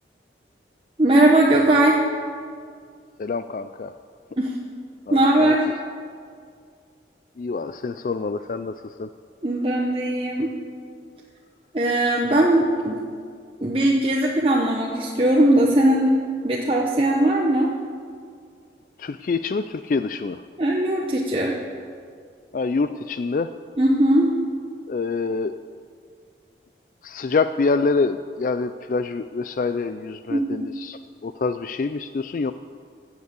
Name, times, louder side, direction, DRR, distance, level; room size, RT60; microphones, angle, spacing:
voice 1, 1.0-2.0 4.4-4.6 5.1-5.6 9.4-10.5 11.7-13.0 13.6-17.7 20.6-21.6 23.8-24.3 30.3-30.7, right 1 dB, 30° right, -2 dB, 1.0 m, -19 dB
voice 2, 3.2-3.9 5.1-5.5 7.4-8.7 9.0-9.1 19.0-20.4 22.5-23.5 24.9-25.6 27.0-32.5, left 4 dB, 50° left, 11 dB, 0.3 m, -26 dB
16.0 x 8.1 x 6.7 m, 2.2 s
head